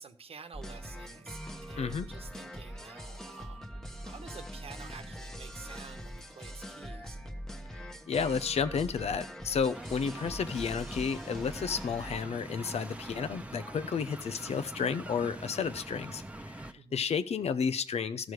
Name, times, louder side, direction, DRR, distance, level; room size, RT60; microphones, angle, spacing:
voice 1, 0.0-7.2 16.8-17.1, right 5 dB, 70° right, 9 dB, 1.1 m, -50 dB
sound 1, 0.5-12.2, equal, 5° left, 1.1 m, -43 dB
voice 2, 1.8-2.1 7.7-18.3, left 6 dB, 85° left, 12 dB, 0.8 m, -32 dB
sound 2, 9.7-16.7, right 1 dB, 10° right, 0.9 m, -44 dB
13.5 x 6.4 x 4.8 m, 0.41 s
wide cardioid pair, 110°, 11 cm